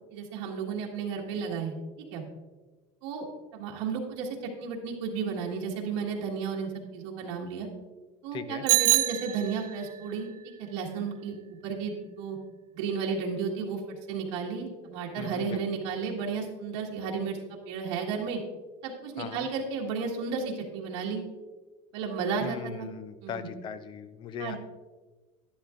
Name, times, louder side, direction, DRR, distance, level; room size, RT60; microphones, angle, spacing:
voice 1, 0.1-1.7 2.1-2.2 3.0-3.3 3.5-7.7 8.2-10.3 10.6-12.4 12.7-13.8 14.1-18.4 18.8-21.2 21.9-22.9 23.2-23.5 24.4-24.6, right 5 dB, 85° right, -2 dB, 1.7 m, -33 dB
voice 2, 8.3-8.6 15.2-15.6 19.2-19.5 22.4-24.6, left 7 dB, 35° left, 12 dB, 0.6 m, -39 dB
Bicycle bell, 8.7-9.9, right 18 dB, 60° right, 0.6 m, -25 dB
11.0 x 11.0 x 2.5 m, 1.2 s
cardioid pair, 155°, 15 cm